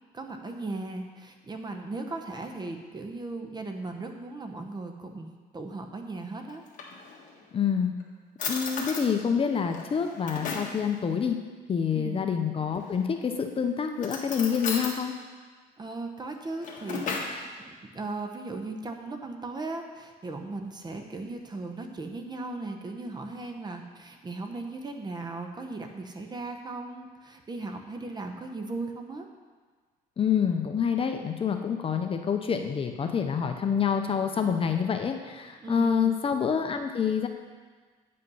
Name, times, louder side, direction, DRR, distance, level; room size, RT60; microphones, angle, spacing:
voice 1, 0.1-6.6 11.9-12.3 15.8-17.1 17.4-29.3 35.6-36.2, right 2 dB, 25° right, 5 dB, 0.9 m, -37 dB
Drawer open or close, 6.5-7.4 8.0-8.1 8.4-9.1 9.7-10.8 12.7-13.2 14.0-15.0 16.3-17.4, left 5 dB, 50° left, 1.6 m, -35 dB
voice 2, 7.5-7.9 8.5-11.4 11.7-15.1 30.2-37.3, left 7 dB, 35° left, 5 dB, 0.7 m, -27 dB
8.9 x 5.5 x 5.5 m, 1.5 s
cardioid pair, 110°, 17 cm